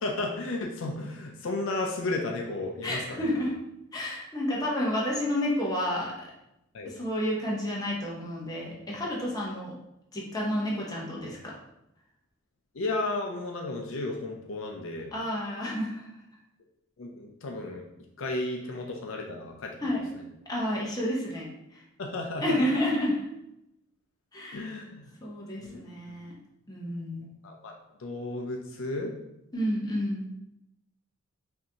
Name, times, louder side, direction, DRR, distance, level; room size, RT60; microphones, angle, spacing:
voice 1, 0.0-3.4 6.7-6.9 12.7-15.1 17.0-17.9 18.2-20.0 22.0-22.6 24.5-25.1 25.6-25.8 27.4-27.7 28.0-29.1, left 2 dB, 60° left, 2 dB, 0.5 m, -33 dB
voice 2, 2.8-3.5 3.9-6.1 6.9-9.7 10.1-11.5 15.1-16.0 19.8-20.1 20.5-21.4 22.4-23.2 24.3-24.7 25.2-26.3 26.7-27.2 29.5-30.3, left 1 dB, 15° left, -4 dB, 0.8 m, -30 dB
5.6 x 2.7 x 2.8 m, 0.85 s
head